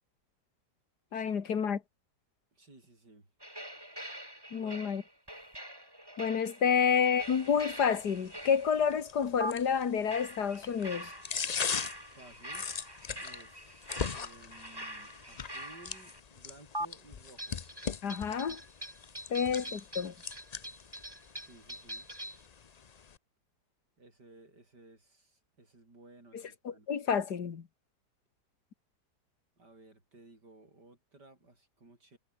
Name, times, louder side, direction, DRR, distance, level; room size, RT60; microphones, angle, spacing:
voice 1, 1.1-1.8 4.5-5.0 6.2-11.1 18.0-18.6 19.3-20.1 26.3-27.6, left 7 dB, 75° left, 2.2 m, -29 dB
voice 2, 2.5-3.3 4.5-4.8 6.7-6.8 12.0-12.7 13.2-17.7 19.3-19.5 21.3-22.1 24.0-26.9 29.6-32.2, right 2 dB, 85° right, 7.5 m, -57 dB
sound 1, 3.4-8.9 9.4-9.5 10.1-16.2 16.7-16.9 17.4-22.5, equal, 15° right, 7.1 m, -44 dB
sound 2, 7.2-23.2, left 6 dB, 45° left, 0.5 m, -41 dB
omnidirectional pair, 1.8 m